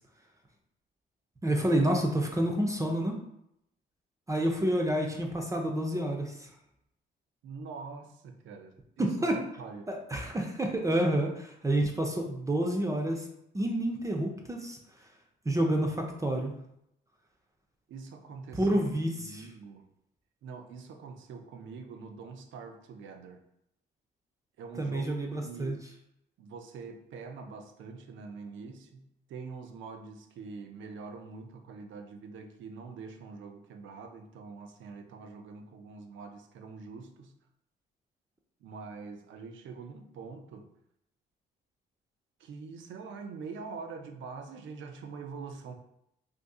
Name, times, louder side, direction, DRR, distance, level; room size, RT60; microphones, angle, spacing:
voice 1, 1.4-3.2 4.3-6.5 9.0-9.3 9.9-13.3 13.5-14.8 15.5-16.5 18.5-19.4 24.8-25.8, right 1 dB, 15° right, 1 dB, 0.5 m, -29 dB
voice 2, 7.4-9.1 9.6-9.9 17.9-19.9 20.4-23.4 24.6-25.8 26.4-37.3 38.6-40.7 42.4-45.7, right 4 dB, 75° right, 5 dB, 0.5 m, -44 dB
2.7 x 2.5 x 3.6 m, 0.77 s
cardioid pair, 90°, 20 cm